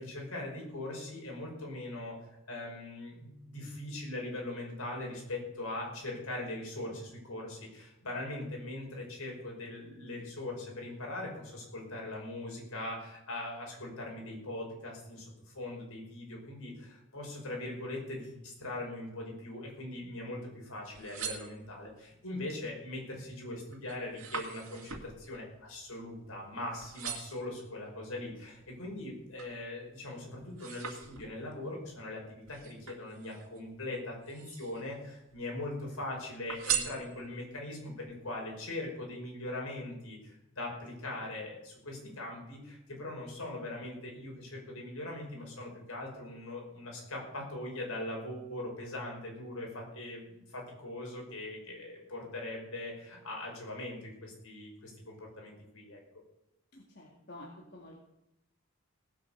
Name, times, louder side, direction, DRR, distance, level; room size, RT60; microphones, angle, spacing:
voice 1, 0.0-2.2 2.5-56.0, left 1 dB, 80° left, 0 dB, 5.5 m, -41 dB
sound 1, 20.8-22.1 22.6-23.0 23.4-26.5 26.8-27.5 28.1-29.6 30.0-31.6 32.5-33.6 34.1-34.9 35.3-36.0 36.5-37.5 38.1-38.2, right 8 dB, 75° right, 2.3 m, -40 dB
voice 2, 56.7-58.0, left 1 dB, 50° left, -2 dB, 2.1 m, -50 dB
18.0 x 8.3 x 6.6 m, 0.87 s
head